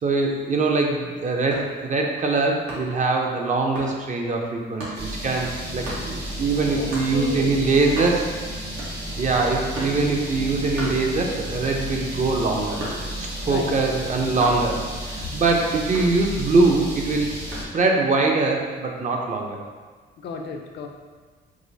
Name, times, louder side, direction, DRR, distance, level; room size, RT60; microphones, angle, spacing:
voice 1, 0.0-8.3 9.2-12.8 13.2-14.8 15.0-17.5 17.7-19.6, right 3 dB, 40° right, 1 dB, 0.6 m, -23 dB
sound 1, 1.5-1.8 2.7-3.0 3.7-4.0 4.8-5.0 5.8-6.1 6.9-7.1 7.6-7.7 7.8-8.4 8.8-9.2 9.7-10.1 10.7-11.5 11.9-13.3 14.4-14.7 15.9-16.6 17.5-17.8, equal, 85° right, 1.2 m, -35 dB
sound 2, 4.9-17.6, equal, 60° right, 1.2 m, -33 dB
voice 2, 6.7-7.6 13.4-13.7 20.2-20.9, left 5 dB, 60° left, 3 dB, 0.5 m, -33 dB
4.8 x 2.0 x 2.7 m, 1.4 s
cardioid pair, 90°, 20 cm